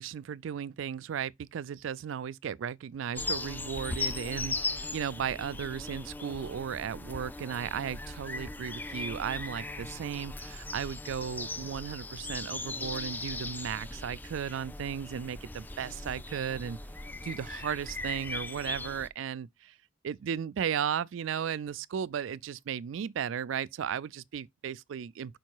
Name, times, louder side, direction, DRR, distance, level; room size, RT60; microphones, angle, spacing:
voice 1, 0.0-16.8 17.2-19.7 20.0-25.4, right 8 dB, 70° right, 0.3 m, -35 dB
sound 1, 3.1-19.1, left 2 dB, 10° left, 0.3 m, -38 dB
5.4 x 4.6 x 4.6 m
head